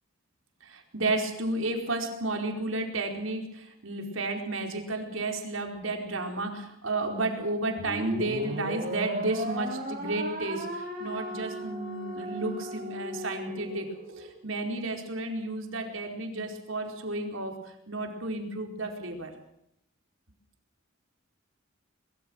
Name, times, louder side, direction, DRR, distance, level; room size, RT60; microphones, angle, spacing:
voice 1, 0.6-13.9 14.2-19.3, right 2 dB, 80° right, 3 dB, 4.6 m, -32 dB
sound 1, 7.8-14.3, right 1 dB, 45° right, 5.7 m, -36 dB
23.5 x 22.0 x 6.4 m, 0.73 s
head